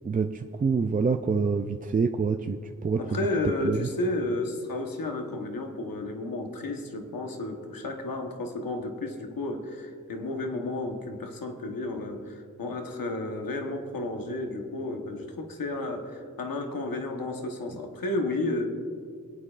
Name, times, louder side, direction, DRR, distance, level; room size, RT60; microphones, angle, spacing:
voice 1, 0.0-3.2 3.6-3.8, right 5 dB, 25° right, 6 dB, 0.3 m, -26 dB
voice 2, 3.0-18.7, left 2 dB, 90° left, 4 dB, 1.2 m, -32 dB
24.0 x 8.9 x 2.4 m, 2.2 s
wide cardioid pair, 75°, 33 cm